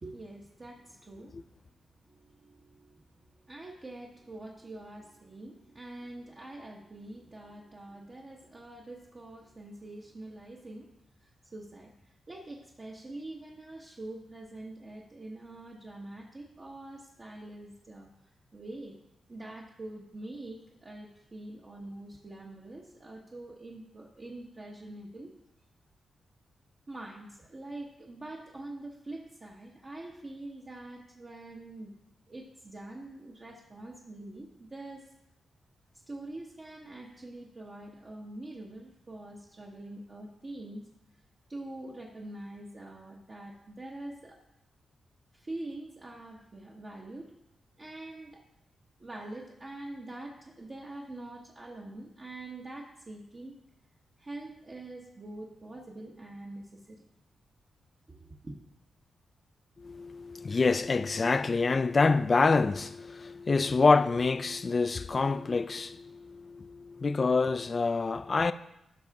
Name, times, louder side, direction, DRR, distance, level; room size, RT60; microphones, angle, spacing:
voice 1, 0.0-1.4 2.1-10.9 11.2-19.0 19.3-25.3 26.9-31.9 32.3-35.1 36.1-40.9 41.5-44.4 45.3-47.3 47.8-48.4 49.0-53.6 54.2-57.0 58.1-58.6, right 2 dB, 35° right, 1.2 m, -45 dB
voice 2, 59.8-68.5, left 4 dB, 40° left, 0.4 m, -26 dB
13.0 x 5.7 x 3.6 m
cardioid pair, 80°, 0 cm